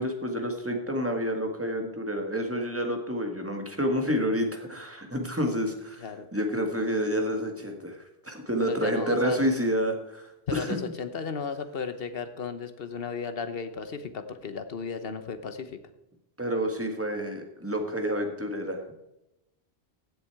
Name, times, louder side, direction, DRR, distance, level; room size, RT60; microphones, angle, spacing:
voice 1, 0.0-10.7 16.4-18.8, equal, 15° right, 3 dB, 1.7 m, -29 dB
voice 2, 8.6-9.4 10.5-15.8, left 5 dB, 65° left, 10 dB, 1.2 m, -35 dB
16.0 x 7.0 x 4.7 m, 0.91 s
omnidirectional pair, 1.1 m